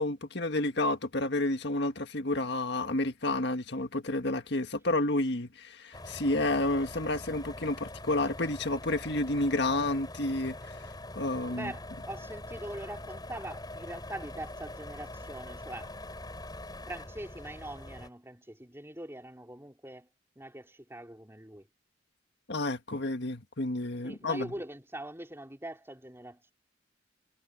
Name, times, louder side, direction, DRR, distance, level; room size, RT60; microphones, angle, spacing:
voice 1, 0.0-10.8 11.2-11.7 22.5-24.5, left 2 dB, 65° left, 1.7 m, -30 dB
sound 1, 5.9-18.1, left 1 dB, 20° left, 7.5 m, -43 dB
voice 2, 11.5-16.0 16.9-20.1 20.4-21.7 24.0-26.5, right 1 dB, 15° right, 3.8 m, -43 dB
head